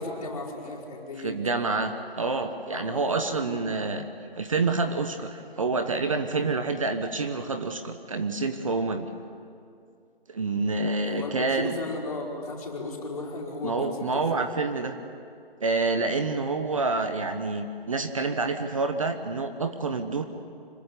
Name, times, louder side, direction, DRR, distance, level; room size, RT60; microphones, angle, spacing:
voice 1, 0.0-1.3 2.7-3.6 11.0-14.2, left 2 dB, 35° left, -1 dB, 4.9 m, -35 dB
voice 2, 1.2-4.0 4.4-9.1 10.3-11.8 13.6-15.0 15.6-20.2, right 3 dB, 35° right, 7 dB, 1.2 m, -28 dB
25.5 x 22.0 x 9.9 m, 2.4 s
figure-of-eight pair, 165°, 30 cm